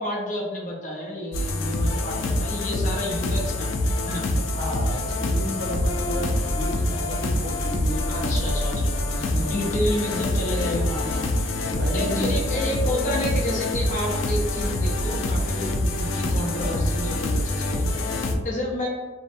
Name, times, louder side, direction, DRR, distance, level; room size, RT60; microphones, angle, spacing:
voice 1, 0.0-4.2 8.1-9.0 9.4-11.3 11.9-18.9, left 1 dB, 45° left, -3 dB, 0.6 m, -30 dB
sound 1, 1.3-18.4, left 1 dB, 90° left, 0.4 m, -25 dB
voice 2, 4.5-9.6 11.6-12.3, equal, 60° right, -1 dB, 0.5 m, -33 dB
2.6 x 2.1 x 2.5 m, 1.3 s
head